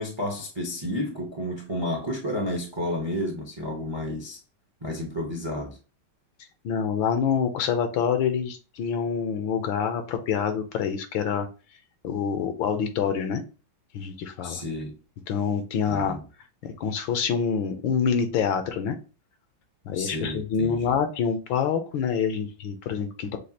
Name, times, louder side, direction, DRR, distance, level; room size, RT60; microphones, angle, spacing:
voice 1, 0.0-4.4 4.8-5.8 14.4-14.9 15.9-16.2 19.9-20.9, left 1 dB, 35° right, 0.4 m, -31 dB
voice 2, 6.6-11.5 12.0-13.4 13.9-14.6 15.3-16.2 16.6-19.0 19.9-23.4, left 7 dB, 75° left, 1.5 m, -26 dB
6.4 x 2.4 x 2.8 m
omnidirectional pair, 2.2 m